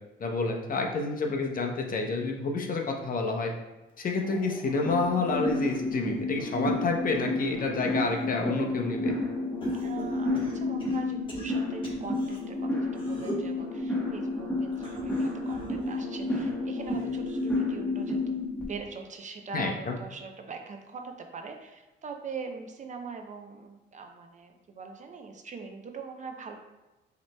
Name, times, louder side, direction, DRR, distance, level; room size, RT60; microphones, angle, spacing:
voice 1, 0.2-3.5 4.0-9.1 19.5-20.0, left 3 dB, 45° left, 2 dB, 0.7 m, -29 dB
sound 1, 3.9-6.3 6.8-8.7 9.6-12.4 12.9-13.5 14.7-17.6 18.0-18.4 19.5-19.6, left 1 dB, 25° left, 1.1 m, -45 dB
sound 2, 4.8-18.6, left 2 dB, 5° left, 1.2 m, -31 dB
voice 2, 9.8-18.4 18.7-26.6, right 5 dB, 40° right, 4 dB, 0.5 m, -42 dB
5.7 x 2.9 x 2.2 m, 1.1 s
cardioid pair, 90°, 20 cm